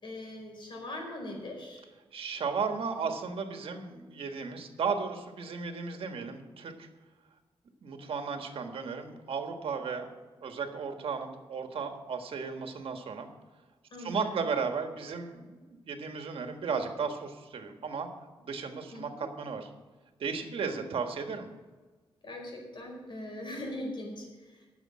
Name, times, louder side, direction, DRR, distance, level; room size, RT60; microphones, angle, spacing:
voice 1, 0.0-1.8 13.9-14.4 18.9-19.3 20.7-20.8 22.2-24.7, left 1 dB, 60° left, 0 dB, 4.8 m, -41 dB
voice 2, 2.1-6.9 7.8-10.1 10.4-13.3 14.0-18.1 18.4-19.7 20.2-21.5, right 5 dB, 75° right, 5 dB, 1.5 m, -35 dB
9.8 x 7.1 x 8.6 m, 1.3 s
cardioid pair, 85°, 10 cm